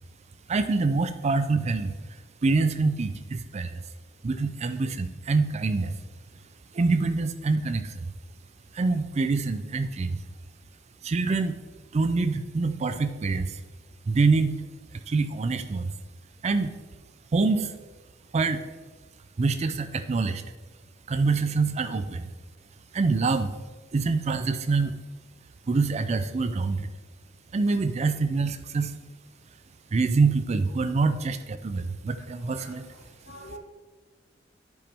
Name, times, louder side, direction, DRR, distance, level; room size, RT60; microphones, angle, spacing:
voice 1, 0.5-1.9 2.4-3.8 4.2-5.9 6.7-8.0 8.7-10.2 11.0-11.6 11.9-13.5 14.1-14.5 15.1-15.9 16.4-16.7 17.3-17.7 18.3-18.6 19.4-20.4 21.1-22.3 22.9-23.5 23.9-25.0 25.7-26.9 27.5-28.9 29.9-32.8, right 3 dB, 35° right, 11 dB, 0.4 m, -25 dB
voice 2, 32.2-33.6, equal, 60° left, -3 dB, 2.1 m, -48 dB
10.5 x 4.9 x 3.4 m, 1.3 s
head